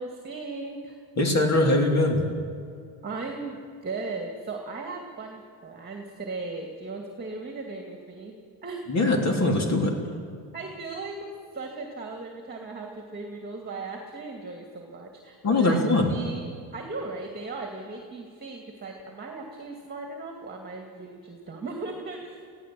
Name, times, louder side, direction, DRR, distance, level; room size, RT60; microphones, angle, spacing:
voice 1, 0.0-1.0 3.0-3.6 3.8-8.3 8.6-8.9 10.5-15.8 16.1-22.4, right 3 dB, 20° right, 2 dB, 2.4 m, -37 dB
voice 2, 1.2-2.2 8.9-9.9 15.4-16.1, left 2 dB, 35° left, 1 dB, 3.4 m, -22 dB
23.5 x 15.5 x 7.7 m, 2.3 s
cardioid pair, 130°, 46 cm